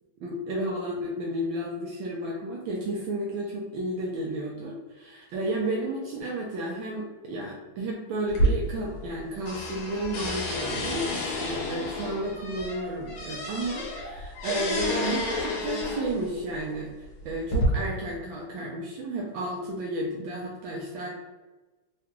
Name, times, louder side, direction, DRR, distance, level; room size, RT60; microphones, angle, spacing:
voice 1, 0.2-21.1, right 1 dB, 75° right, -2 dB, 1.2 m, -32 dB
sound 1, 8.3-9.2 9.5-16.3 17.0-17.6, equal, 70° left, 1.5 m, -30 dB
3.9 x 2.2 x 2.9 m, 1.2 s
omnidirectional pair, 2.3 m